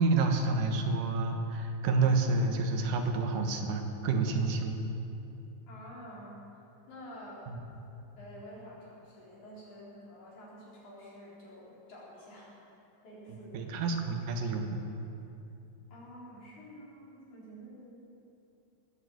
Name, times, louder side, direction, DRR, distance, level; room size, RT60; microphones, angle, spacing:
voice 1, 0.0-4.8 7.5-7.6 13.3-14.8, right 3 dB, 85° right, 4 dB, 2.9 m, -29 dB
voice 2, 5.7-7.5 8.2-13.8 15.9-18.1, equal, 65° left, -7 dB, 5.5 m, -49 dB
19.5 x 8.3 x 8.0 m, 2.8 s
omnidirectional pair, 3.6 m